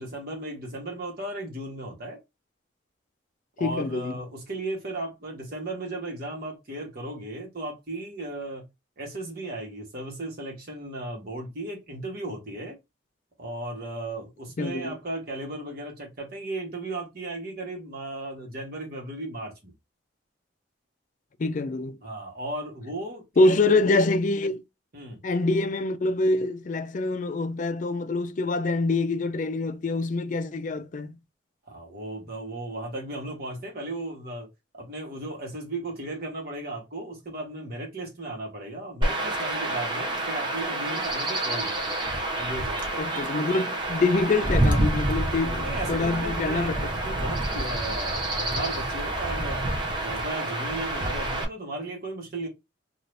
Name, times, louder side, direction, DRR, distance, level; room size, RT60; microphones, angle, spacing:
voice 1, 0.0-2.2 3.6-8.7 9.0-12.8 13.4-19.7 22.0-23.8 24.9-25.2 31.7-34.5 34.7-42.0 42.3-43.3 45.6-49.7 50.0-52.5, right 2 dB, 50° right, 1.2 m, -35 dB
voice 2, 3.6-4.1 14.6-14.9 21.4-22.0 23.4-24.6 25.2-31.1 43.0-46.9, left 2 dB, 40° left, 0.4 m, -25 dB
Chirp tweet / Wind / Stream, 39.0-51.4, right 1 dB, 25° right, 0.6 m, -28 dB
2.7 x 2.5 x 3.2 m
head